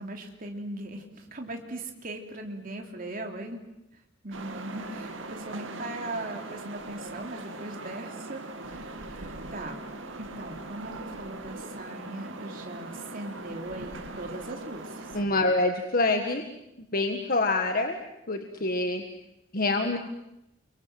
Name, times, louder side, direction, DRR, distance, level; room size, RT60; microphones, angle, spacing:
voice 1, 0.0-3.6 4.2-9.8 10.2-15.4, right 2 dB, 45° right, 2 dB, 3.3 m, -39 dB
sound 1, 4.3-15.3, right 2 dB, 80° right, 2.5 m, -40 dB
voice 2, 15.1-16.5 16.9-18.0 18.3-19.0 19.5-20.0, left 2 dB, 50° left, 5 dB, 1.7 m, -26 dB
30.0 x 24.0 x 7.7 m, 0.87 s
head